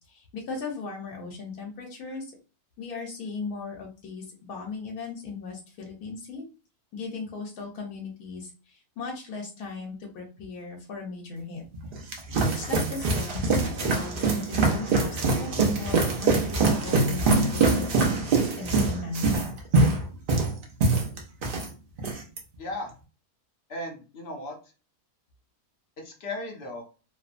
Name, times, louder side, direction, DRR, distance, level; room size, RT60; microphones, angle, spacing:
voice 1, 0.1-2.3 2.8-6.4 6.9-11.6 12.5-19.4, left 4 dB, 80° left, 0 dB, 1.2 m, -37 dB
sound 1, 11.7-21.7 22.0-22.4, right 3 dB, 65° right, 0.5 m, -24 dB
voice 2, 22.6-22.9 23.7-24.6 26.0-26.8, left 1 dB, 55° left, 2 dB, 0.7 m, -36 dB
2.9 x 2.0 x 2.4 m, 0.33 s
omnidirectional pair, 1.6 m